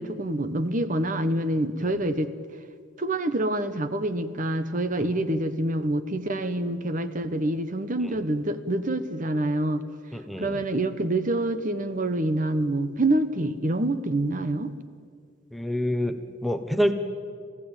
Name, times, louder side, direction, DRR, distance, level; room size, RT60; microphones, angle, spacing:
voice 1, 0.0-2.3 3.0-9.8 10.4-14.7, right 1 dB, 40° right, 11 dB, 1.0 m, -26 dB
voice 2, 10.1-10.6 15.5-16.9, equal, ahead, 7 dB, 0.8 m, -27 dB
27.5 x 16.0 x 8.9 m, 2.1 s
head